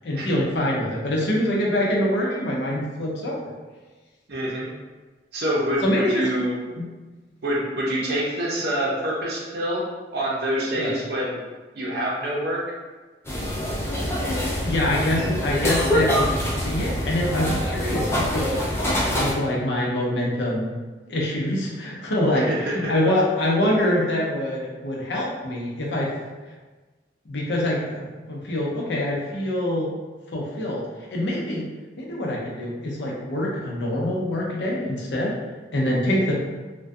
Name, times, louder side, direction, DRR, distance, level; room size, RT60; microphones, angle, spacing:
voice 1, 0.0-3.5 5.8-6.2 6.8-6.9 10.7-10.9 14.6-16.3 16.6-20.7 21.1-26.1 27.3-29.9 30.3-30.8 31.1-31.6 32.0-35.4 35.7-36.3, left 1 dB, 80° left, -3 dB, 0.6 m, -25 dB
voice 2, 4.3-4.7 5.3-6.9 7.4-9.8 10.1-11.4 11.7-12.6 22.3-22.9, right 1 dB, 60° right, -5 dB, 0.5 m, -26 dB
sound 1, 13.2-19.3, equal, 15° left, 0.4 m, -25 dB
2.3 x 2.2 x 2.6 m, 1.3 s
head